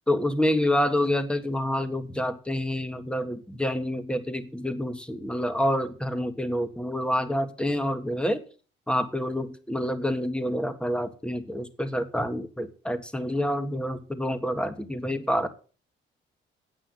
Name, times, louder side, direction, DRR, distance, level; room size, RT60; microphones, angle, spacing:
voice 1, 0.1-8.4 8.9-15.5, left 1 dB, 5° left, 10 dB, 1.4 m, -27 dB
8.8 x 7.9 x 7.0 m, 0.37 s
cardioid pair, 90°, 20 cm